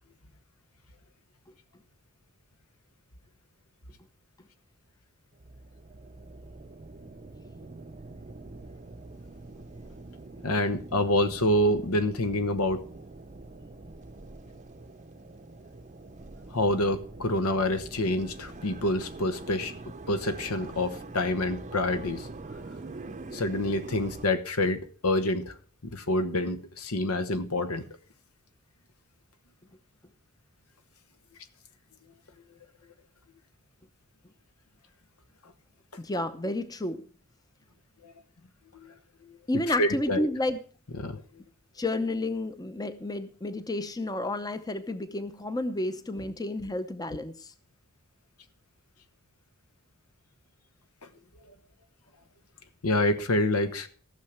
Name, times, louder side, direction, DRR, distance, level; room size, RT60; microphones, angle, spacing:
sound 1, 5.3-24.3, right 2 dB, 35° right, 0.7 m, -44 dB
voice 1, 10.4-12.8 16.5-19.7 20.1-22.3 23.3-25.6 25.8-27.9 38.0-38.1 38.7-38.9 39.3-39.4 39.8-40.3 41.0-41.2 52.8-53.9, left 1 dB, 80° left, 1.2 m, -27 dB
voice 2, 36.0-37.0 39.5-40.6 41.7-47.5, left 1 dB, 15° left, 0.7 m, -31 dB
15.0 x 6.5 x 5.8 m
head